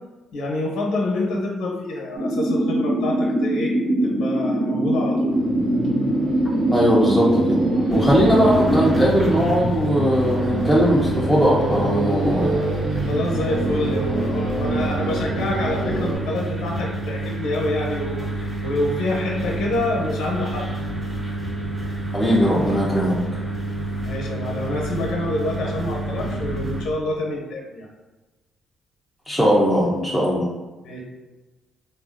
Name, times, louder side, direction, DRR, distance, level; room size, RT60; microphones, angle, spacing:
voice 1, 0.3-3.7 4.0-5.3 13.1-20.7 24.0-27.9 30.8-31.0, left 2 dB, 85° left, -1 dB, 0.6 m, -27 dB
sound 1, 2.2-9.1, right 1 dB, 85° right, 1.1 m, -22 dB
sound 2, 5.2-16.2, right 2 dB, 70° right, 0.7 m, -27 dB
voice 2, 6.7-7.6 7.9-12.6 22.1-23.2 29.3-30.5, equal, ahead, -6 dB, 0.5 m, -19 dB
sound 3, 7.9-26.8, right 2 dB, 25° right, 1.1 m, -28 dB
3.2 x 2.4 x 2.4 m, 1.2 s
cardioid pair, 90°, 0 cm